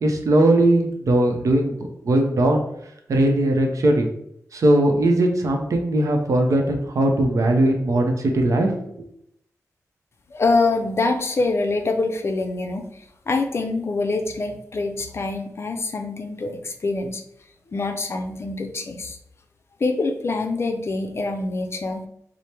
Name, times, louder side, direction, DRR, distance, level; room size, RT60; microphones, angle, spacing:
voice 1, 0.0-2.6 3.1-4.1 4.5-8.9, right 1 dB, 65° right, 3 dB, 0.6 m, -19 dB
voice 2, 10.3-12.9 13.3-17.2 17.7-19.2 19.8-22.1, left 3 dB, 45° left, 5 dB, 0.4 m, -25 dB
4.3 x 2.0 x 3.3 m, 0.74 s
wide cardioid pair, 115°, 6 cm